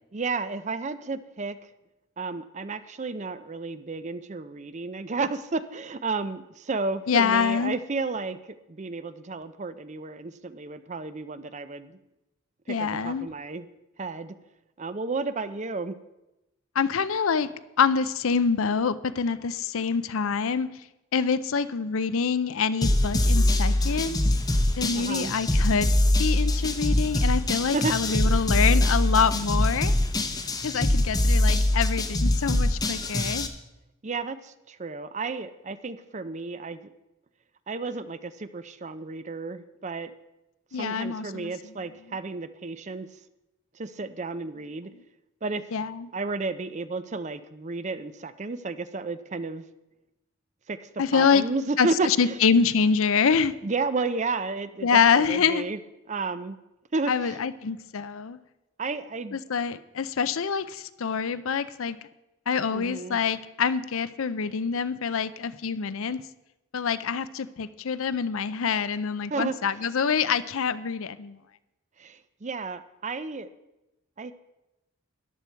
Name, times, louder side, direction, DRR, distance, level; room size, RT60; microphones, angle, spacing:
voice 1, 0.1-1.6 2.2-12.0 12.7-13.7 14.0-14.3 14.8-16.0 24.9-25.3 27.7-28.2 34.0-36.8 37.7-40.1 40.7-43.1 43.7-44.9 45.4-45.6 46.1-49.6 50.7-52.4 53.6-55.8 56.1-56.6 56.9-57.4 58.8-59.4 62.7-63.2 69.3-69.6 72.0-73.5 74.2-74.3, right 3 dB, 30° right, 13 dB, 0.5 m, -32 dB
voice 2, 7.1-7.8 12.7-13.3 16.8-17.5 17.8-20.7 21.1-24.2 24.8-25.9 26.2-29.9 30.6-33.5 40.7-41.5 45.7-46.1 51.0-51.4 51.8-53.5 54.8-55.7 57.1-58.4 59.3-62.0 62.5-66.2 66.7-71.4, left 6 dB, 65° left, 15 dB, 0.5 m, -25 dB
sound 1, 22.8-33.5, left 1 dB, 15° left, 0.8 m, -23 dB
13.5 x 11.0 x 4.5 m, 0.96 s
head